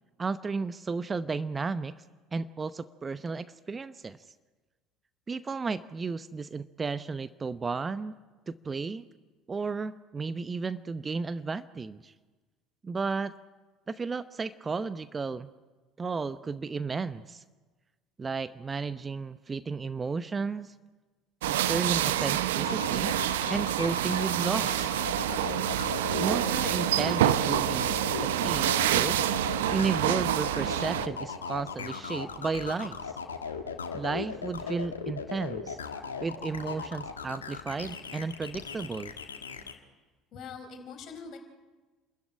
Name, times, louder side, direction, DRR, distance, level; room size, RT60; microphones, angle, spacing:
voice 1, 0.2-1.9 2.3-4.2 5.3-8.2 8.5-9.0 9.5-12.1 12.8-13.3 13.9-15.5 16.0-17.4 18.2-20.7 21.5-23.1 23.5-24.9 26.2-29.2 29.7-33.1 33.9-35.8 36.2-39.1, right 4 dB, 25° right, 14 dB, 0.8 m, -33 dB
sound 1, 21.4-31.1, right 12 dB, 75° right, 0.8 m, -27 dB
sound 2, 22.6-39.7, left 5 dB, 85° left, 1.5 m, -37 dB
voice 2, 40.3-41.4, left 5 dB, 50° left, 5 dB, 4.5 m, -43 dB
28.0 x 13.5 x 10.0 m, 1.3 s
figure-of-eight pair, 65°, 0 cm